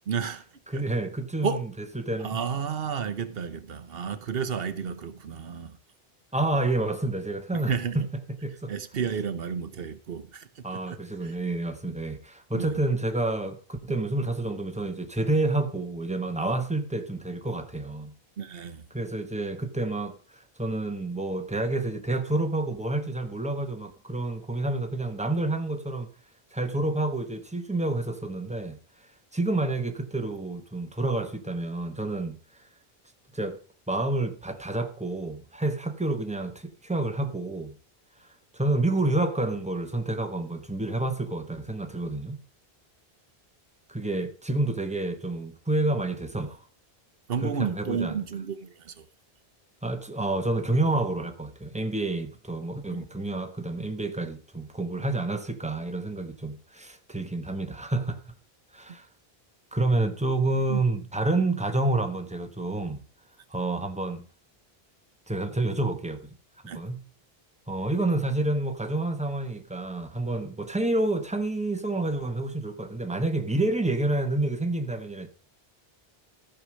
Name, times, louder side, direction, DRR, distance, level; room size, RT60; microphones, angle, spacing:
voice 1, 0.1-0.4 0.7-0.8 1.4-1.6 2.2-5.8 7.7-8.0 8.7-11.3 11.8-11.9 12.5-12.8 18.4-18.8 47.3-49.0 52.9-53.0 60.7-60.8 66.6-66.8, right 6 dB, 70° right, 1.1 m, -32 dB
voice 2, 0.7-2.4 6.3-7.7 8.4-8.7 10.6-18.1 18.9-26.1 26.5-28.8 29.3-32.4 33.3-33.6 33.9-37.7 38.5-42.4 43.9-46.6 47.4-48.2 49.8-58.2 58.7-59.1 59.7-63.0 63.5-64.2 65.3-66.3 66.6-67.0 67.7-75.3, right 2 dB, 5° right, 1.0 m, -29 dB
14.5 x 4.9 x 6.3 m
omnidirectional pair, 1.0 m